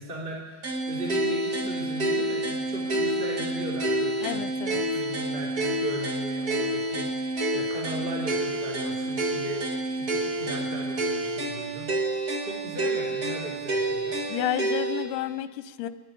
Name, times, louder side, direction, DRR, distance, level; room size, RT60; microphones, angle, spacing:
voice 1, 0.0-4.4 4.7-11.9 12.4-14.2, right 1 dB, 15° right, -3 dB, 3.4 m, -38 dB
sound 1, 0.6-15.1, right 1 dB, 35° right, 1.7 m, -28 dB
voice 2, 4.2-4.9 14.3-15.9, left 12 dB, 75° left, 12 dB, 2.2 m, -31 dB
21.5 x 12.0 x 9.9 m, 1.5 s
omnidirectional pair, 4.0 m